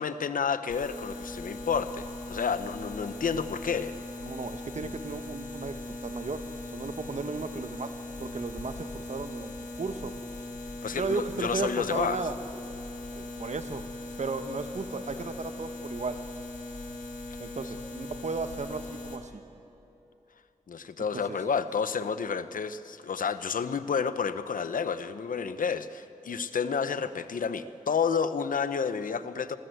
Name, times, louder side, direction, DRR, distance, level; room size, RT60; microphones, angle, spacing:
voice 1, 0.0-3.9 10.8-12.2 20.7-29.6, left 6 dB, 90° left, 12 dB, 0.9 m, -30 dB
sound 1, 0.7-19.2, left 2 dB, 70° left, 3.3 m, -40 dB
voice 2, 4.2-6.4 6.7-7.9 8.2-10.1 10.9-12.3 13.1-13.8 14.2-16.2 17.4-19.4 21.1-21.4, right 4 dB, 60° right, 9 dB, 1.4 m, -35 dB
27.5 x 22.0 x 7.9 m, 2.9 s
wide cardioid pair, 90°, 14 cm